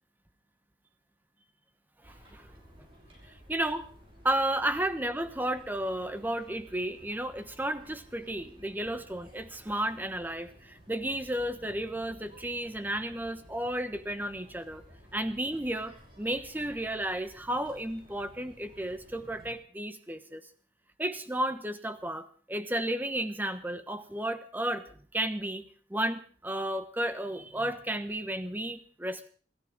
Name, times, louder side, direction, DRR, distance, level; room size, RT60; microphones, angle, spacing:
voice 1, 2.0-2.5 3.5-3.9 4.2-14.8 15.1-20.4 21.0-29.3, right 1 dB, 10° right, 10 dB, 1.1 m, -33 dB
sound 1, 2.0-19.5, equal, 30° right, 5.8 m, -55 dB
26.5 x 14.0 x 3.7 m, 0.43 s
head